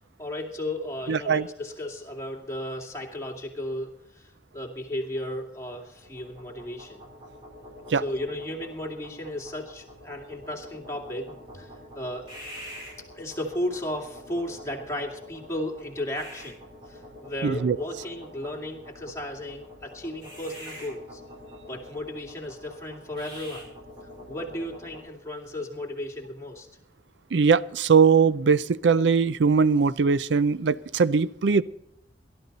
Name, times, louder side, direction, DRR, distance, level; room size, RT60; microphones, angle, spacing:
voice 1, 0.2-7.0 7.9-12.3 13.1-21.2 21.7-23.7 24.3-26.7, left 1 dB, 15° left, 0 dB, 2.4 m, -35 dB
voice 2, 1.1-1.5 7.9-8.0 17.4-17.8 27.3-31.6, right 5 dB, 85° right, 17 dB, 0.5 m, -21 dB
sound 1, 5.8-25.1, left 1 dB, 25° right, 6.3 m, -45 dB
18.5 x 12.0 x 4.1 m, 0.74 s
head